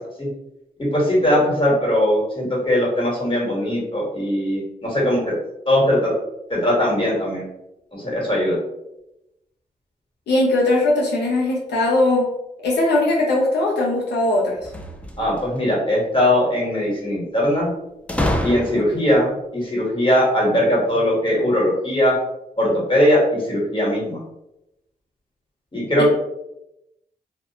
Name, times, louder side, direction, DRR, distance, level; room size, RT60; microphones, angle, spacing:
voice 1, 0.8-5.3 5.7-6.1 6.5-7.4 7.9-8.6 15.2-17.7 18.4-22.2 22.6-24.2 25.7-26.1, left 1 dB, 30° left, -4 dB, 1.3 m, -20 dB
voice 2, 10.3-12.3 12.6-14.6 19.0-19.1 26.0-26.1, left 2 dB, 90° left, -2 dB, 0.5 m, -19 dB
sound 1, 14.6-15.6 18.1-19.1, left 1 dB, 5° left, 0.4 m, -26 dB
2.4 x 2.1 x 2.8 m, 0.87 s
cardioid pair, 50°, 17 cm